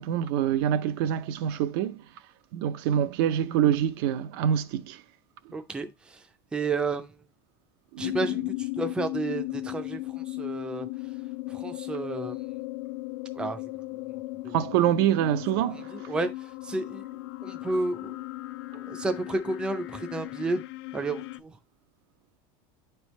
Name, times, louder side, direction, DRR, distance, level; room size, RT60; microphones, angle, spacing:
voice 1, 0.0-2.0 2.5-5.0 7.9-8.2 14.5-15.9, right 10 dB, 65° right, 0.5 m, -25 dB
voice 2, 5.5-6.2 6.5-7.1 8.0-10.9 11.5-12.3 13.4-13.6 13.9-14.0 14.4-14.6 15.9-18.2 18.7-20.6 20.9-21.5, right 3 dB, 5° right, 0.4 m, -32 dB
sound 1, 8.0-21.4, left 20 dB, 80° left, 0.4 m, -36 dB
9.1 x 3.4 x 3.0 m
supercardioid pair, 160°, 13 cm